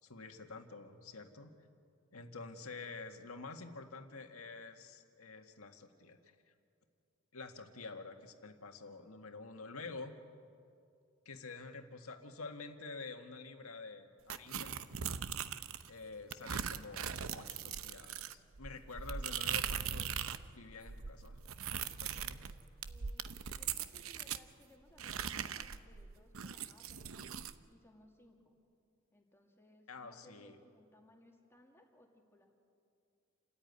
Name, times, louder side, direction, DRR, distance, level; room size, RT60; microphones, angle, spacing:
voice 1, 0.0-1.6 2.1-6.3 7.3-10.2 11.3-14.8 15.9-21.4 21.7-22.5 29.9-30.6, left 3 dB, 90° left, 6 dB, 1.8 m, -49 dB
sound 1, 14.3-15.9 16.3-20.5 20.7-24.4 25.0-27.6, right 8 dB, 70° right, 0.8 m, -40 dB
Keyboard (musical), 21.9-24.8, equal, 25° left, 1.3 m, -70 dB
voice 2, 22.8-27.4 27.7-28.6 29.1-32.5, left 1 dB, 10° left, 1 dB, 2.5 m, -64 dB
29.0 x 14.0 x 9.5 m, 2.4 s
head